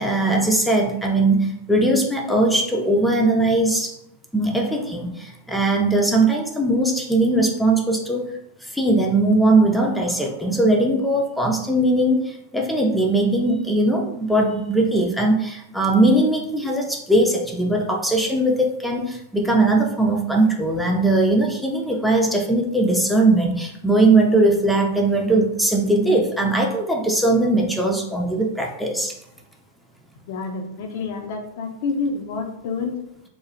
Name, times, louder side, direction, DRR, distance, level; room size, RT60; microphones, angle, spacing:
voice 1, 0.0-3.9 4.3-8.3 8.6-29.1, right 2 dB, ahead, 0 dB, 0.4 m, -20 dB
voice 2, 30.3-33.0, left 4 dB, 60° left, 3 dB, 0.4 m, -28 dB
3.0 x 2.0 x 2.5 m, 0.80 s
hypercardioid pair, 105°, 0 cm